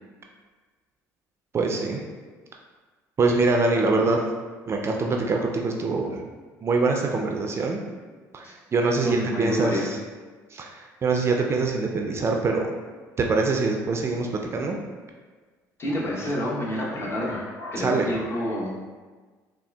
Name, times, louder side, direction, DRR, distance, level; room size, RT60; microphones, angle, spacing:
voice 1, 1.5-2.0 3.2-4.2 4.7-6.2 6.6-7.8 8.3-10.0 10.5-12.7 13.2-14.8 17.8-18.1, right 3 dB, 35° right, 1 dB, 0.4 m, -24 dB
voice 2, 9.0-9.9 15.8-18.8, equal, 35° left, -3 dB, 0.8 m, -28 dB
3.6 x 2.3 x 2.2 m, 1.4 s
supercardioid pair, 75°, 8 cm